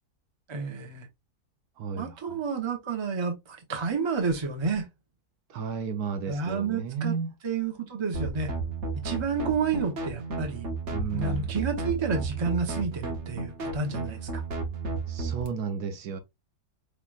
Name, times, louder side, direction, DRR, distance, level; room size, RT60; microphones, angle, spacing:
voice 1, 0.5-1.1 2.0-4.9 6.3-7.1 7.4-8.5 8.9-10.7 11.1-14.4, right 5 dB, 25° right, 0.7 m, -30 dB
voice 2, 1.8-2.1 5.5-7.3 10.9-11.5 15.1-16.2, right 6 dB, 70° right, 1.2 m, -33 dB
sound 1, 8.1-15.5, right 3 dB, 50° right, 1.1 m, -33 dB
4.9 x 3.2 x 2.4 m
omnidirectional pair, 1.7 m